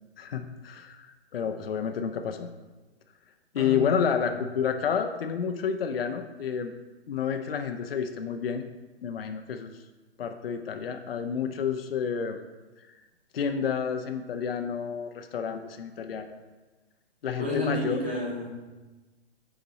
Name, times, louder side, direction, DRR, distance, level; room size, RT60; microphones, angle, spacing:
voice 1, 0.2-2.5 3.5-6.7 7.1-8.6 9.0-9.8 10.2-12.4 13.3-16.4 17.2-18.0, left 7 dB, 60° left, 7 dB, 0.6 m, -30 dB
voice 2, 3.6-3.9 4.2-4.3 17.4-18.5, left 1 dB, 10° right, -6 dB, 0.5 m, -31 dB
7.2 x 4.0 x 4.7 m, 1.2 s
hypercardioid pair, 175°, 33 cm